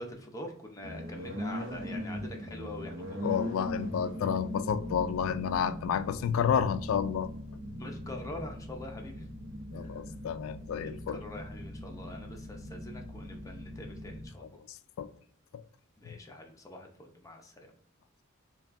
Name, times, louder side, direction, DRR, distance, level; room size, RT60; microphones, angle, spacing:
voice 1, 0.0-3.3 7.8-9.3 9.8-9.9 10.8-14.6 16.0-17.7, left 1 dB, 15° left, 0.6 m, -44 dB
sound 1, 0.8-14.3, equal, 65° right, 0.8 m, -40 dB
voice 2, 3.2-7.3 9.7-11.2 14.4-15.1 15.5-15.6 16.1-16.2, left 7 dB, 85° left, 0.3 m, -31 dB
5.6 x 2.3 x 2.5 m
head